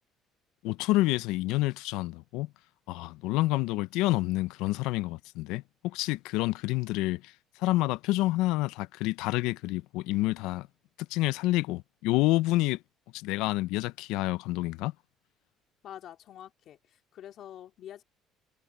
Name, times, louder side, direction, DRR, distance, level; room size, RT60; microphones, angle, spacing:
voice 1, 0.6-2.5 2.9-7.3 7.6-10.7 11.1-12.8 13.1-14.9, left 18 dB, 80° left, 0.6 m, -28 dB
voice 2, 15.8-18.0, left 11 dB, 60° left, 2.9 m, -46 dB
supercardioid pair, 70°, 0 cm